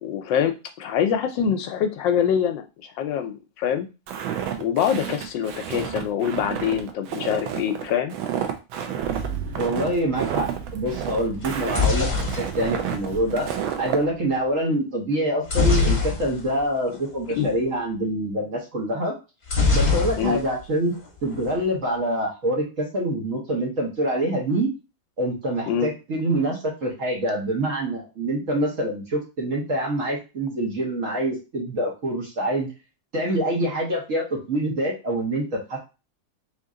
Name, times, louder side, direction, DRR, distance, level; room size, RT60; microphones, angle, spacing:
voice 1, 0.0-2.7 3.0-3.9 4.6-8.2 17.4-17.5 20.2-20.4 25.7-25.9, left 8 dB, 75° left, 7 dB, 1.2 m, -24 dB
Walk footsteps, 4.1-14.0, right 9 dB, 85° right, 1.5 m, -30 dB
Engine starting, 9.0-14.5, right 5 dB, 70° right, 0.9 m, -37 dB
voice 2, 9.6-13.5 13.8-19.1 19.7-20.9 21.2-24.7 25.2-32.7 33.1-35.8, right 1 dB, 45° right, -1 dB, 1.3 m, -25 dB
sound 1, 11.4-13.5 15.5-16.6 16.9-17.1 17.3-17.5 19.5-20.6 20.9-21.5, left 4 dB, 25° left, 1.2 m, -23 dB
3.9 x 2.9 x 3.6 m, 0.29 s
omnidirectional pair, 2.1 m